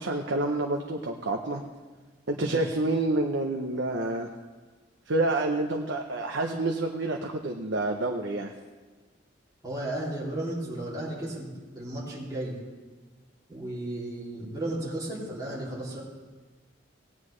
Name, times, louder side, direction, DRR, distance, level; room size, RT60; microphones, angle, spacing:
voice 1, 0.0-1.6 2.3-4.3 5.1-8.5, right 2 dB, 75° right, 2 dB, 0.8 m, -28 dB
voice 2, 9.6-12.6 13.5-16.0, right 1 dB, 20° right, -8 dB, 2.8 m, -34 dB
18.0 x 9.7 x 3.2 m, 1.3 s
head